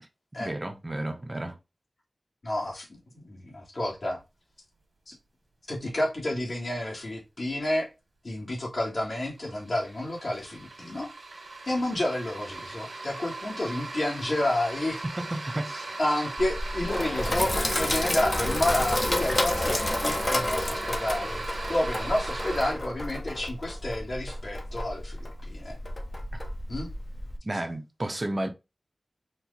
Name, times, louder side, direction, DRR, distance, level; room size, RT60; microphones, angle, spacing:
voice 1, 0.4-1.6 15.2-15.7 26.3-26.4 27.4-28.5, right 1 dB, 30° right, 0.6 m, -32 dB
voice 2, 2.4-4.2 5.1-5.2 5.7-7.9 8.2-11.1 11.6-15.0 15.7-25.8 26.7-26.9, left 1 dB, 55° left, 1.6 m, -30 dB
sound 1, 8.6-8.7 9.0-22.7, right 2 dB, 85° right, 1.4 m, -38 dB
Sink (filling or washing), 16.4-27.4, left 1 dB, 35° left, 0.7 m, -30 dB
4.4 x 2.1 x 4.0 m
wide cardioid pair, 85°, 0 cm